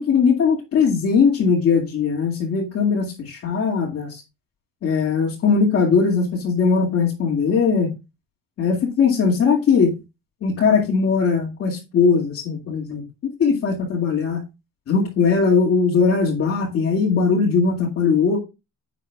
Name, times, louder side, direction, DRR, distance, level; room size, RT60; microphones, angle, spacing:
voice 1, 0.0-4.2 4.8-7.9 8.6-9.9 10.4-13.1 13.4-14.4 14.9-18.4, left 5 dB, 45° left, 2.2 m, -19 dB
11.0 x 8.3 x 2.4 m
cardioid pair, 170°, 34 cm